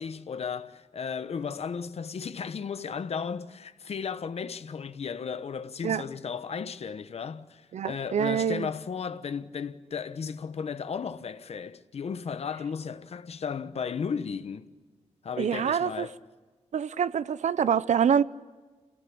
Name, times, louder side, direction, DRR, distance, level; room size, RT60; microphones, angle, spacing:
voice 1, 0.0-14.7 15.2-16.2, left 6 dB, 60° left, 1.1 m, -35 dB
voice 2, 7.7-8.7 15.4-16.1 16.7-18.2, right 8 dB, 85° right, 0.7 m, -25 dB
27.0 x 18.0 x 8.7 m
wide cardioid pair, 170°, 12 cm